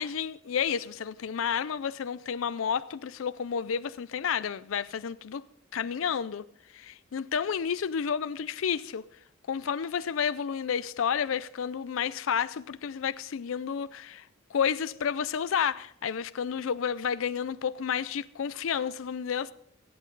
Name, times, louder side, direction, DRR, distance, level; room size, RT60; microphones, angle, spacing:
voice 1, 0.0-5.4 5.7-6.4 6.7-9.0 9.5-14.2 14.5-19.5, left 7 dB, 80° left, 0.4 m, -31 dB
22.5 x 8.7 x 3.9 m
head